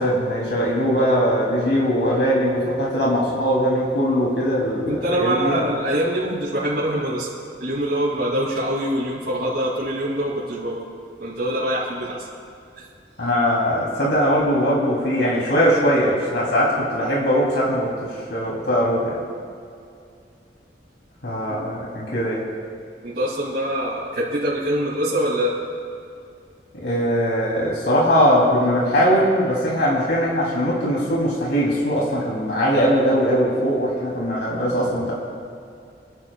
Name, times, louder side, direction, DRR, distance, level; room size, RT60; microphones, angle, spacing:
voice 1, 0.0-5.6 13.2-19.2 21.2-22.4 26.8-35.1, equal, 85° left, -4 dB, 3.2 m, -20 dB
voice 2, 4.8-7.3 7.6-10.8 11.2-12.3 21.5-21.7 23.0-25.6, right 1 dB, 70° right, -9 dB, 2.8 m, -24 dB
29.0 x 11.0 x 2.4 m, 2.4 s
head